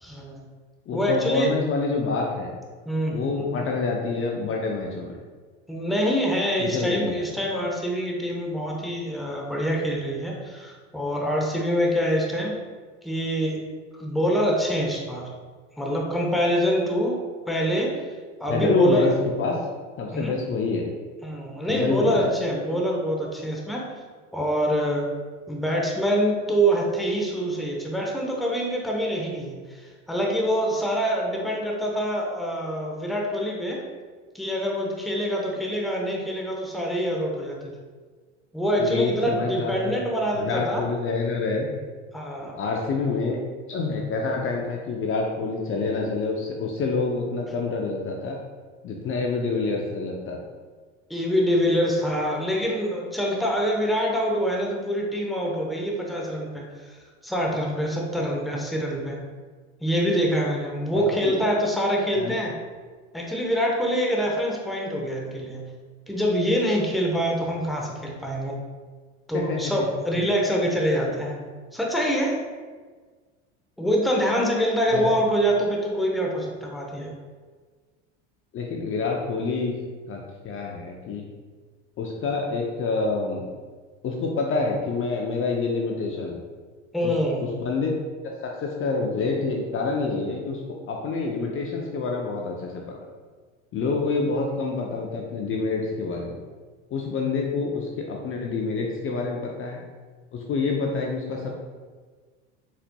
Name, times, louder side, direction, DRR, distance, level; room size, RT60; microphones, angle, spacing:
voice 1, 0.0-0.4 0.9-1.5 2.9-3.6 5.7-12.5 13.0-13.6 13.9-15.3 15.8-17.2 17.5-17.9 18.4-19.2 20.1-20.4 21.2-23.9 24.3-25.1 25.5-33.8 34.3-37.7 38.5-40.8 42.1-42.6 51.1-57.0 57.2-59.2 59.8-62.5 63.1-65.6 66.1-68.5 69.3-71.4 71.7-72.4 73.8-77.1 86.9-87.4, equal, ahead, -2 dB, 0.7 m, -25 dB
voice 2, 0.9-2.5 3.1-5.2 6.6-7.3 18.5-19.1 19.4-19.6 20.0-20.9 21.7-22.4 38.8-40.0 40.3-41.7 42.6-43.4 43.7-48.4 48.8-50.4 60.9-61.4 62.1-62.4 69.3-69.7 74.9-75.1 78.5-79.8 80.1-81.3 82.0-83.5 84.0-86.4 87.0-87.9 88.2-90.6 90.9-93.0 93.7-96.4 96.9-99.8 100.3-101.5, left 3 dB, 35° left, 0 dB, 0.6 m, -27 dB
4.1 x 4.1 x 2.2 m, 1.5 s
hypercardioid pair, 90°, 35 cm